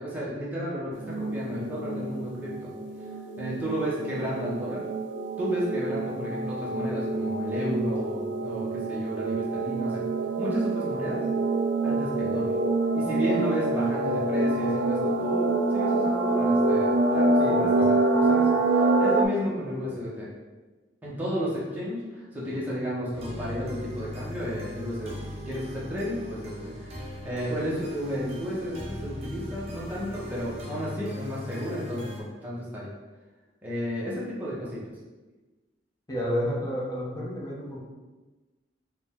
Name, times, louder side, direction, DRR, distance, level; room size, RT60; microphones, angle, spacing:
voice 1, 0.0-2.7 3.4-4.8 5.4-10.0 10.4-11.2 11.8-12.5 12.9-20.3 21.0-25.1 25.5-32.9 33.6-34.9, equal, 10° right, -7 dB, 1.0 m, -33 dB
sound 1, 0.9-19.2, right 2 dB, 70° right, 0.4 m, -26 dB
voice 2, 17.4-17.9 36.1-37.8, equal, 20° left, -5 dB, 0.9 m, -31 dB
sound 2, 23.1-32.2, left 1 dB, 35° right, 0.8 m, -39 dB
4.9 x 2.3 x 3.6 m, 1.2 s
head